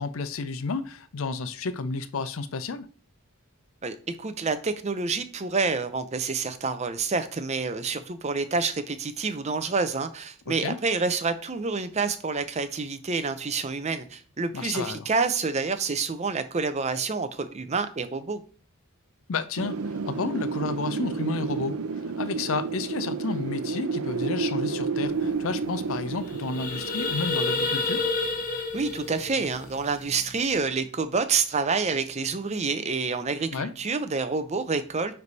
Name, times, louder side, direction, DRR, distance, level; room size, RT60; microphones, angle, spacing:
voice 1, 0.0-2.9 10.5-10.8 14.5-15.1 19.3-28.1 33.5-33.7, left 4 dB, 65° left, 0.5 m, -31 dB
voice 2, 3.8-18.4 28.7-35.2, right 4 dB, 30° right, 0.6 m, -28 dB
Wind, 19.6-28.3, right 4 dB, 80° right, 0.6 m, -31 dB
sound 1, 25.2-25.3 25.5-25.7 26.1-30.4, left 3 dB, 40° left, 0.8 m, -30 dB
9.6 x 3.3 x 4.1 m
head